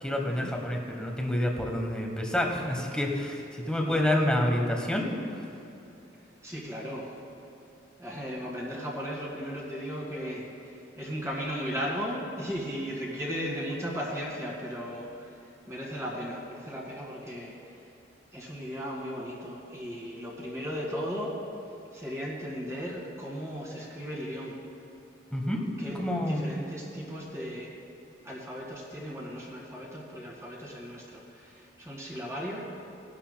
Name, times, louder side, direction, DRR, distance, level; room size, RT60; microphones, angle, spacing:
voice 1, 0.0-5.1 25.3-25.6 26.0-26.4, left 1 dB, 5° left, 0 dB, 1.1 m, -28 dB
voice 2, 6.4-7.1 8.0-17.8 18.3-21.4 21.9-24.6 25.8-27.7 28.2-32.6, equal, 15° right, -3 dB, 1.9 m, -36 dB
18.5 x 11.5 x 2.2 m, 2.9 s
head